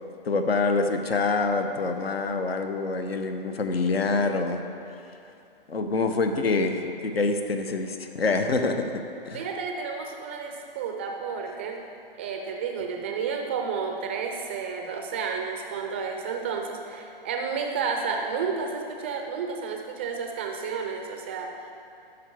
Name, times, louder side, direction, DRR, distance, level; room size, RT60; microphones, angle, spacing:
voice 1, 0.2-4.6 5.7-8.9 9.3-9.4, left 3 dB, 90° left, 6 dB, 0.9 m, -26 dB
voice 2, 9.3-11.8 12.2-21.7, right 5 dB, 15° right, 3 dB, 0.3 m, -31 dB
12.5 x 5.2 x 4.5 m, 2.6 s
hypercardioid pair, 140°, 29 cm